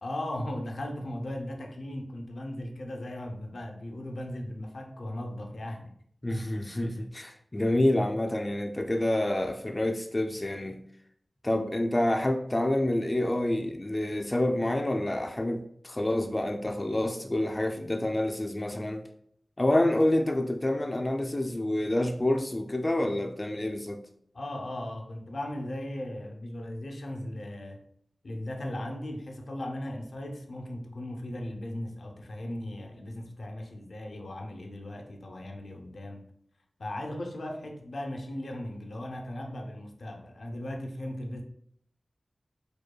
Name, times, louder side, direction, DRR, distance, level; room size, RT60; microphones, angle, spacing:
voice 1, 0.0-5.9 24.3-27.8 28.2-36.2 36.8-41.4, left 1 dB, 80° left, 2 dB, 0.5 m, -37 dB
voice 2, 6.2-10.8 11.4-19.0 19.6-24.0, left 1 dB, 30° left, 4 dB, 0.3 m, -28 dB
4.8 x 2.2 x 2.2 m, 0.67 s
wide cardioid pair, 55°, 0 cm